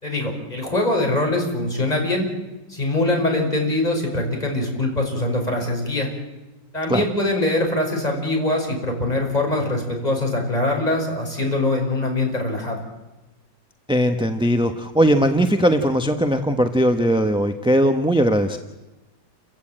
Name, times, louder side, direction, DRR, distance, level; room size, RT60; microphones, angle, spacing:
voice 1, 0.0-2.3 2.7-6.1 6.7-12.8, left 2 dB, 20° left, 1 dB, 5.8 m, -23 dB
voice 2, 13.9-18.6, equal, 5° right, 6 dB, 0.8 m, -19 dB
29.5 x 15.5 x 8.8 m, 1.1 s
omnidirectional pair, 2.0 m